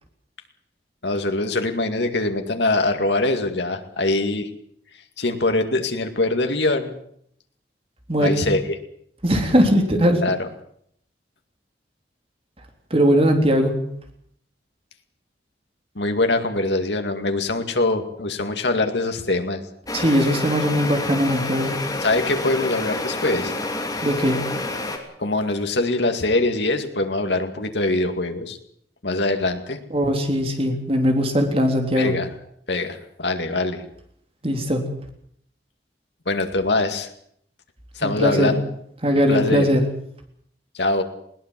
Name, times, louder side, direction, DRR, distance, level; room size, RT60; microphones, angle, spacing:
voice 1, 1.0-4.5 5.2-7.0 8.2-8.8 10.2-10.5 16.0-19.6 22.0-23.5 25.2-28.6 29.0-29.8 32.0-32.3 32.7-33.8 36.3-37.1 37.9-38.6 39.3-39.7 40.7-41.0, left 2 dB, 80° left, 6 dB, 2.2 m, -23 dB
voice 2, 8.1-8.4 9.2-10.2 12.9-13.7 19.9-21.8 24.0-24.4 29.9-32.1 34.4-34.8 38.0-38.5 39.0-39.9, equal, 35° right, 4 dB, 3.6 m, -20 dB
sound 1, 19.9-25.0, left 2 dB, 20° left, 3.0 m, -28 dB
21.0 x 18.0 x 7.6 m, 0.69 s
head